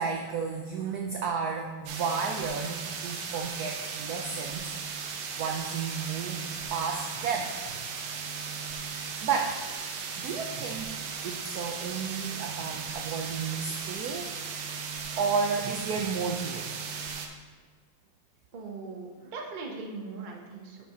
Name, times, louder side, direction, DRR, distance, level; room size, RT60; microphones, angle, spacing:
voice 1, 0.0-4.7 5.3-7.5 9.2-9.7 10.2-11.0 11.2-14.3 15.2-16.7, right 5 dB, 80° right, 2 dB, 0.8 m, -32 dB
sound 1, 1.9-17.3, right 5 dB, 65° right, 1.2 m, -37 dB
voice 2, 18.5-20.8, right 4 dB, 45° right, 0 dB, 0.6 m, -40 dB
6.5 x 5.4 x 4.4 m, 1.4 s
omnidirectional pair, 2.3 m